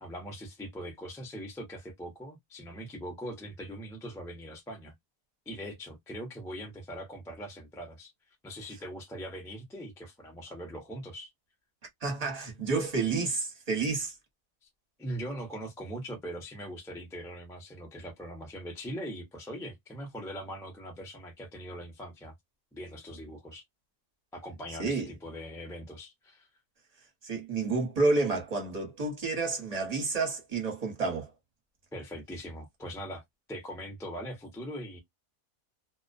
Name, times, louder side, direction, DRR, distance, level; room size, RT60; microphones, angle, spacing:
voice 1, 0.0-4.9 5.5-8.1 8.4-11.3 14.6-14.7 15.0-22.3 22.7-23.6 24.3-26.5 31.9-33.2 33.5-35.0, equal, 5° left, 0.4 m, -41 dB
voice 2, 12.0-14.1 24.8-25.1 27.2-31.3, right 3 dB, 30° right, 0.9 m, -30 dB
2.4 x 2.1 x 2.4 m
omnidirectional pair, 1.5 m